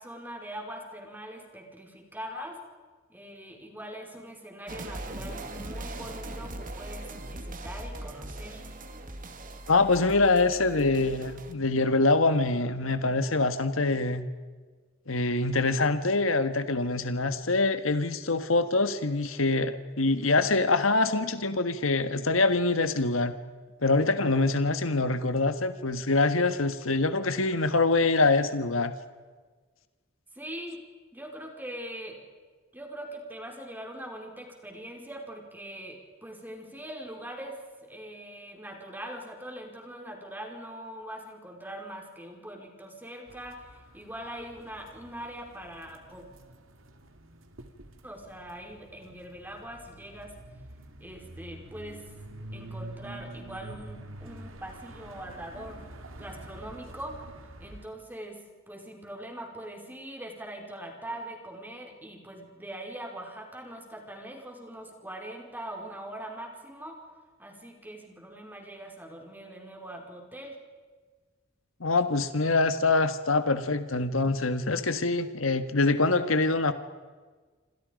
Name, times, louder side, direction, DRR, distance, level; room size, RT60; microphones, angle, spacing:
voice 1, 0.0-2.6 3.1-8.6 30.3-30.8 31.1-32.2 32.7-43.6 43.9-46.2 48.0-50.3 51.0-52.0 52.5-55.9 56.2-57.2 57.6-58.4 58.7-67.0 67.4-70.6, right 1 dB, 10° right, 2 dB, 5.0 m, -42 dB
sound 1, 4.7-11.5, right 1 dB, 40° right, 2.4 m, -40 dB
voice 2, 9.7-14.2 15.1-23.4 23.8-28.9 71.8-76.7, left 3 dB, 75° left, 10 dB, 1.6 m, -25 dB
sound 2, 43.3-57.9, right 1 dB, 70° right, 2.6 m, -47 dB
28.5 x 26.0 x 5.3 m, 1.4 s
head